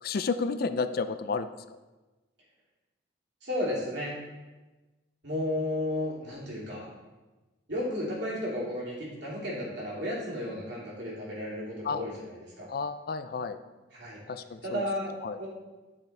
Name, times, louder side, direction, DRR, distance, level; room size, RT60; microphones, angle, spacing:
voice 1, 0.0-1.5 11.8-12.0 12.7-13.6 14.3-14.8 15.2-15.4, left 4 dB, 50° left, 11 dB, 0.4 m, -31 dB
voice 2, 3.4-4.2 5.2-6.9 7.7-12.7 13.9-14.2 14.6-15.5, left 1 dB, 60° right, -6 dB, 2.8 m, -33 dB
11.5 x 5.9 x 3.3 m, 1.2 s
head